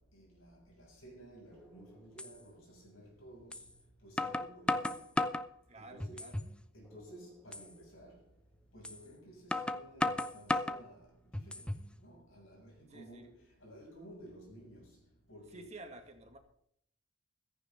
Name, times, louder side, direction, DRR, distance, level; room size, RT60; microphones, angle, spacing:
voice 1, 0.1-3.7 4.0-5.1 5.8-6.3 6.7-8.2 8.7-11.7 12.0-15.0 15.3-15.8, right 1 dB, 75° left, 6.9 m, -54 dB
sound 1, 1.6-1.7 2.2-2.3 3.5-3.7 4.2-5.5 6.0-6.5 6.9-7.0 7.5-7.7 8.8-9.0 9.5-10.8 11.3-11.9, left 1 dB, 5° left, 0.5 m, -34 dB
voice 2, 5.7-6.4 12.9-13.3 15.5-16.4, right 2 dB, 30° right, 2.0 m, -51 dB
15.5 x 14.5 x 3.8 m
head